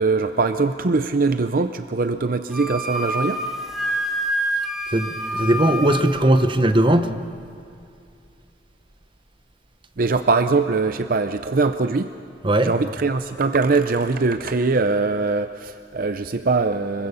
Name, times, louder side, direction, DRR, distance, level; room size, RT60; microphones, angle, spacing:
voice 1, 0.0-3.4 10.0-12.1 12.6-17.1, right 3 dB, 50° right, 9 dB, 0.6 m, -22 dB
Wind instrument woodwind instrument, 2.5-6.2, equal, ahead, 1.9 m, -27 dB
voice 2, 4.9-7.1 12.4-12.7, right 1 dB, 30° right, 9 dB, 1.0 m, -18 dB
25.0 x 23.0 x 7.0 m, 2.5 s
head